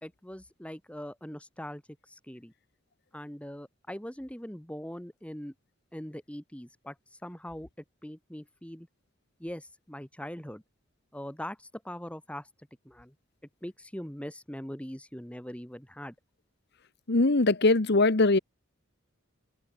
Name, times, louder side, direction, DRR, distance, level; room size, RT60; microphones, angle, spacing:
voice 1, 0.0-1.8 2.1-2.5 3.1-5.5 5.9-7.7 8.0-8.9 9.4-10.6 11.1-12.5 12.9-13.1 13.6-16.1, equal, 5° left, 2.1 m, -41 dB
voice 2, 17.1-18.4, left 2 dB, 55° left, 1.1 m, -21 dB
head